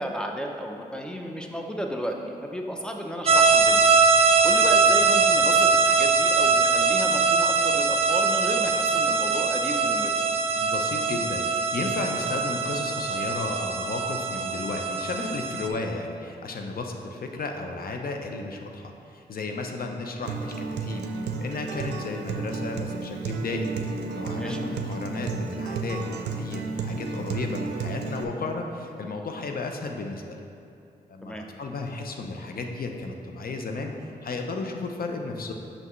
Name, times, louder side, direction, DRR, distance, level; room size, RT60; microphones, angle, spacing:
voice 1, 0.0-3.9 4.4-10.1 24.3-24.6 31.2-31.5, equal, 5° left, 2 dB, 0.7 m, -33 dB
sound 1, 3.3-15.7, right 4 dB, 35° right, 0.6 m, -22 dB
voice 2, 10.6-21.0 21.4-23.7 24.1-26.0 26.3-30.4 31.1-33.9 34.2-35.5, left 3 dB, 60° left, 3 dB, 0.7 m, -33 dB
Acoustic guitar, 20.2-28.2, right 4 dB, 85° right, 0.4 m, -32 dB
6.6 x 5.8 x 3.1 m, 2.6 s
cardioid pair, 50°, 17 cm